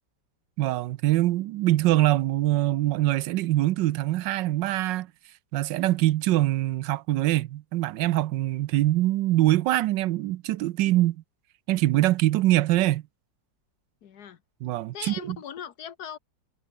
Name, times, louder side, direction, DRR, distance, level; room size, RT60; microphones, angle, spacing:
voice 1, 0.6-5.1 5.5-11.2 11.7-13.0 14.6-15.4, right 16 dB, 80° right, 1.3 m, -23 dB
voice 2, 14.0-14.4 14.9-16.2, left 8 dB, 60° left, 1.6 m, -39 dB
omnidirectional pair, 2.0 m